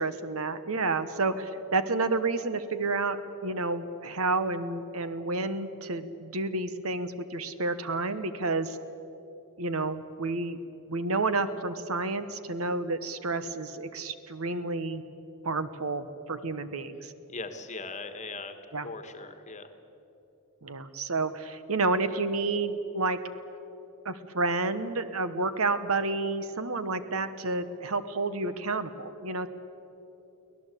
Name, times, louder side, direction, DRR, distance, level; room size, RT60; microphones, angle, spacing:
voice 1, 0.0-8.8 9.6-10.6 10.9-15.0 15.4-17.1 18.7-18.9 20.6-23.2 24.0-29.5, right 3 dB, 75° right, 12 dB, 1.2 m, -30 dB
voice 2, 17.3-18.6 18.8-19.7, left 3 dB, 30° left, 8 dB, 1.5 m, -39 dB
24.0 x 17.5 x 8.3 m, 3.0 s
head